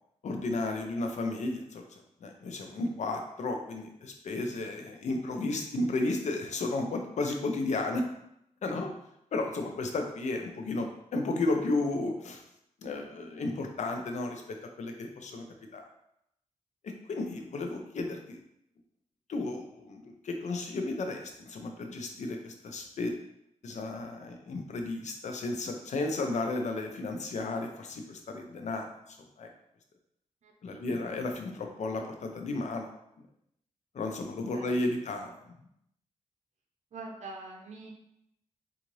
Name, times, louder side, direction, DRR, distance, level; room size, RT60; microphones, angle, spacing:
voice 1, 0.2-8.0 8.6-8.9 9.3-12.4 12.8-15.5 15.7-15.9 16.8-18.4 19.3-23.1 23.6-29.5 30.6-32.9 33.9-35.5, left 2 dB, 65° left, 3 dB, 0.6 m, -33 dB
voice 2, 30.4-31.0 34.5-34.7 35.0-35.1 36.9-37.9, right 3 dB, 65° right, 1 dB, 0.6 m, -45 dB
3.8 x 2.5 x 3.1 m, 0.78 s
cardioid pair, 75°, 13 cm